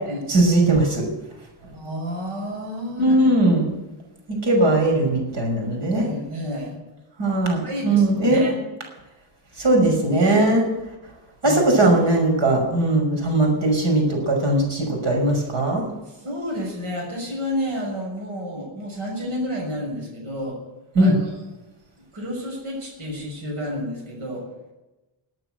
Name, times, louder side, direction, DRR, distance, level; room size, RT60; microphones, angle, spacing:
voice 1, 0.3-1.0 3.0-3.8 4.3-6.1 7.2-8.4 9.6-10.6 11.4-15.9 20.9-21.1, right 2 dB, 60° right, 2 dB, 6.0 m, -19 dB
voice 2, 1.7-3.2 5.9-6.7 7.6-8.6 10.2-10.4 11.4-11.8 16.1-20.6 21.0-21.4 22.0-24.5, equal, 80° right, -1 dB, 6.5 m, -30 dB
18.5 x 9.2 x 7.9 m, 1.1 s
cardioid pair, 180°, 49 cm